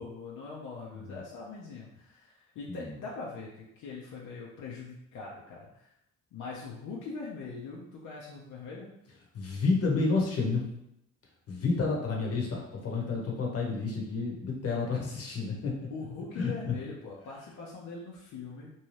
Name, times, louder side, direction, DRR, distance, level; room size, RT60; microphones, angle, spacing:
voice 1, 0.0-5.9 6.3-8.9 11.8-11.9 15.9-18.7, left 4 dB, 75° left, -4 dB, 0.6 m, -42 dB
voice 2, 9.3-10.6 11.5-15.7 16.4-16.7, left 4 dB, 50° left, -1 dB, 0.9 m, -30 dB
2.7 x 2.2 x 3.2 m, 0.81 s
cardioid pair, 90°, 30 cm